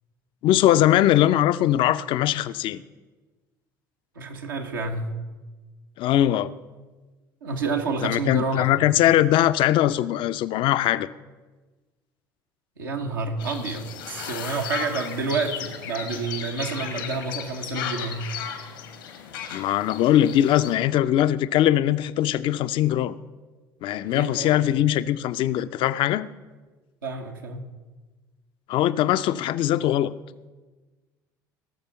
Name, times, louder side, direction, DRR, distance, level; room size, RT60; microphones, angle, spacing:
voice 1, 0.4-2.8 6.0-6.5 8.0-11.1 19.5-23.2 23.8-26.3 28.7-30.1, left 12 dB, 50° left, 14 dB, 0.5 m, -21 dB
voice 2, 4.1-5.2 7.4-8.7 12.8-18.3 24.0-24.6 27.0-27.6, right 4 dB, 80° right, 1 dB, 1.4 m, -29 dB
sound 1, 13.4-20.8, left 8 dB, 80° left, 1.3 m, -35 dB
18.0 x 6.8 x 5.6 m, 1.3 s
figure-of-eight pair, 65°, 11 cm